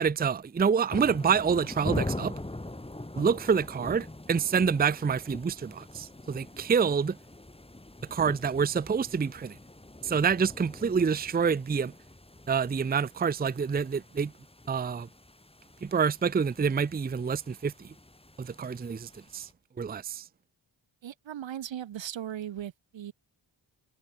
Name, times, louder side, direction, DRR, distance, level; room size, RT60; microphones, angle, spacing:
voice 1, 0.0-2.3 3.2-7.2 8.1-9.6 10.0-11.9 12.5-14.3 14.7-15.1 15.8-17.9 18.4-19.5 19.8-20.2, right 6 dB, 20° right, 0.5 m, -27 dB
sound 1, 0.9-19.5, left 1 dB, 10° left, 2.6 m, -42 dB
voice 2, 21.0-23.1, right 10 dB, 75° right, 1.0 m, -38 dB
cardioid pair, 70°, 46 cm